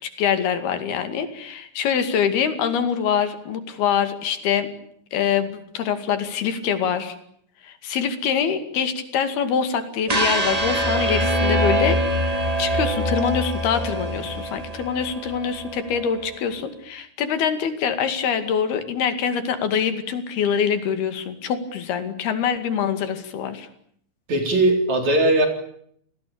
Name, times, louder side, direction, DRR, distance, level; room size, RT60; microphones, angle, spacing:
voice 1, 0.0-4.7 5.1-7.2 7.6-12.0 12.6-23.7, left 7 dB, 90° left, 9 dB, 4.3 m, -24 dB
sound 1, 10.1-16.2, right 1 dB, 25° right, 0.7 m, -24 dB
voice 2, 24.3-25.5, right 1 dB, 50° right, 5 dB, 5.1 m, -19 dB
29.0 x 19.5 x 8.7 m, 0.67 s
omnidirectional pair, 4.3 m